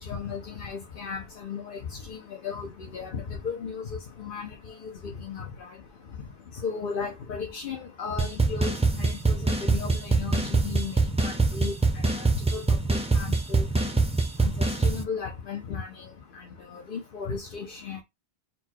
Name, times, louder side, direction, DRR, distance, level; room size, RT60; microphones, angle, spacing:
voice 1, 0.0-2.7 2.9-3.8 4.2-4.5 5.2-5.5 6.6-8.7 9.0-11.0 11.2-11.7 12.5-12.6 12.9-13.7 14.4-14.5 14.8-16.1 16.7-18.0, left 5 dB, 60° left, 0.9 m, -35 dB
sound 1, 8.2-15.0, right 3 dB, 10° right, 0.4 m, -24 dB
4.4 x 2.3 x 4.4 m
omnidirectional pair, 1.0 m